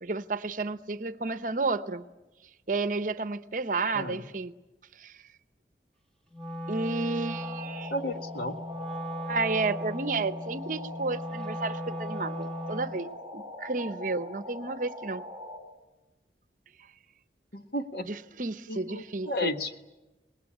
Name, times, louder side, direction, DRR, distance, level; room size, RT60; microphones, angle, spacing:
voice 1, 0.0-2.0 2.7-4.5 5.0-5.1 6.7-7.9 9.3-15.2 18.1-19.5, right 3 dB, 45° right, 12 dB, 0.8 m, -31 dB
Wind instrument woodwind instrument, 6.3-13.0, equal, 5° left, 1.6 m, -38 dB
sound 1, 7.3-15.6, left 2 dB, 15° right, 4.9 m, -42 dB
voice 2, 7.9-8.5 17.5-18.1 18.7-19.8, left 1 dB, 60° left, 7 dB, 1.5 m, -33 dB
25.5 x 20.5 x 9.9 m, 1.1 s
head